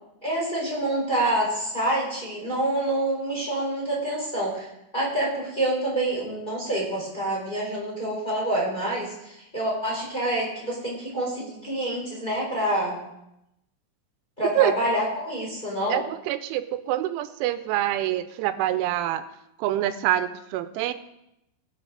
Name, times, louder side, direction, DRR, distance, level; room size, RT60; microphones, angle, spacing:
voice 1, 0.2-4.7 4.9-13.0 14.4-16.0, right 1 dB, 10° left, -4 dB, 3.8 m, -27 dB
voice 2, 15.9-19.3 19.6-20.9, right 13 dB, 85° right, 11 dB, 3.0 m, -26 dB
21.0 x 8.1 x 3.9 m, 0.85 s
omnidirectional pair, 5.5 m